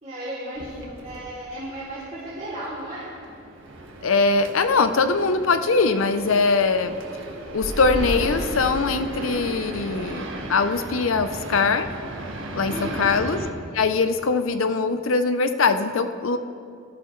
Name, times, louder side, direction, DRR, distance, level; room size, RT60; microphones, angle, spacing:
voice 1, 0.0-3.1 12.7-13.0, right 1 dB, 35° right, -9 dB, 3.0 m, -35 dB
sound 1, 0.6-13.5, right 1 dB, 65° right, 1.5 m, -35 dB
voice 2, 4.0-6.9 7.5-11.9 12.6-13.4 13.7-16.4, left 4 dB, 75° left, 9 dB, 0.7 m, -22 dB
19.0 x 13.0 x 3.2 m, 2.5 s
head